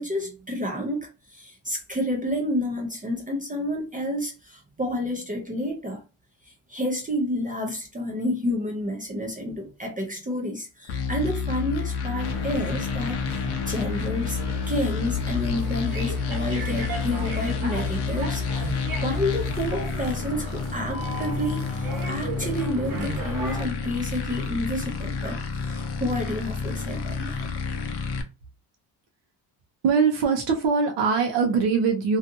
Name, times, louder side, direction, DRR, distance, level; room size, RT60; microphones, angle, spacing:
voice 1, 0.0-6.0 6.4-18.7 19.0-27.5, left 1 dB, 20° right, 0.5 m, -30 dB
sound 1, 10.9-28.2, left 5 dB, 65° left, 0.6 m, -29 dB
sound 2, 12.2-23.6, right 1 dB, 50° right, 0.9 m, -35 dB
voice 2, 29.8-32.2, right 5 dB, 80° right, 0.7 m, -22 dB
2.6 x 2.4 x 2.6 m
wide cardioid pair, 160°, 43 cm